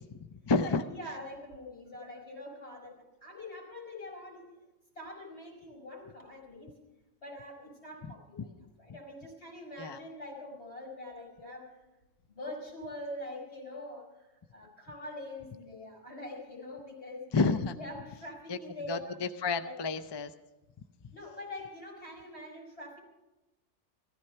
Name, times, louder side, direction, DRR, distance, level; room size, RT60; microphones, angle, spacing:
voice 1, 0.1-0.8 8.4-8.5 9.8-10.0 17.3-17.8 18.5-18.6 18.9-20.3 21.0-21.1, left 4 dB, 35° left, 11 dB, 0.4 m, -30 dB
voice 2, 0.6-4.5 4.9-6.8 7.2-11.7 12.3-17.3 17.8-19.2 19.6-19.7 21.1-23.0, left 1 dB, 60° left, -1 dB, 5.0 m, -44 dB
16.0 x 14.0 x 5.7 m, 1.0 s
omnidirectional pair, 1.3 m